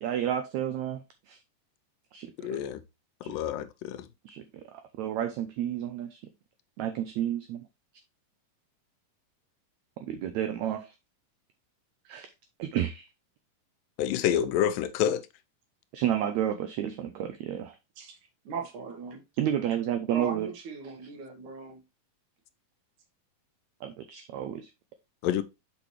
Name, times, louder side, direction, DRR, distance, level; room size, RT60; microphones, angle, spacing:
voice 1, 0.0-1.4 2.1-2.6 3.2-3.3 4.3-4.4 4.7-6.2 6.8-7.6 10.0-11.0 12.1-12.3 12.6-13.1 15.9-17.8 19.4-20.5 23.8-24.7, right 10 dB, 85° right, 1.6 m, -31 dB
voice 2, 2.4-2.8 3.2-4.1 14.0-15.2 25.2-25.4, left 10 dB, 85° left, 2.3 m, -28 dB
voice 3, 18.5-19.2 20.1-21.8, right 5 dB, 65° right, 2.7 m, -38 dB
6.2 x 5.7 x 3.1 m
omnidirectional pair, 3.9 m